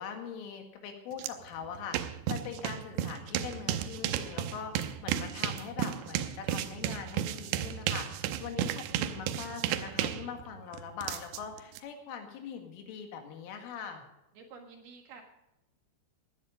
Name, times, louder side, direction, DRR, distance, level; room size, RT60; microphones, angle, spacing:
voice 1, 0.0-14.0, left 7 dB, 80° left, 4 dB, 4.3 m, -42 dB
sound 1, 1.2-1.3 1.6-11.8, right 11 dB, 80° right, 2.6 m, -33 dB
voice 2, 14.3-15.2, right 5 dB, 60° right, 3 dB, 3.1 m, -50 dB
17.5 x 11.0 x 5.1 m, 0.91 s
omnidirectional pair, 5.8 m